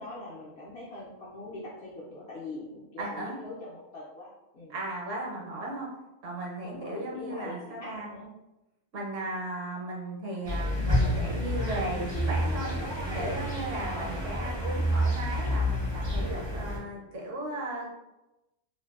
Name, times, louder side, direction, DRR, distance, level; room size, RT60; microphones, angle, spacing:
voice 1, 0.0-4.7 6.6-8.3 13.8-14.8, left 2 dB, 65° left, -7 dB, 0.6 m, -43 dB
voice 2, 3.0-3.4 4.7-5.9 6.2-8.1 8.9-12.7 13.1-17.9, right 2 dB, 65° right, -3 dB, 1.0 m, -36 dB
sound 1, 10.5-16.8, equal, 35° right, 0.4 m, -29 dB
2.6 x 2.1 x 2.3 m, 0.97 s
omnidirectional pair, 1.5 m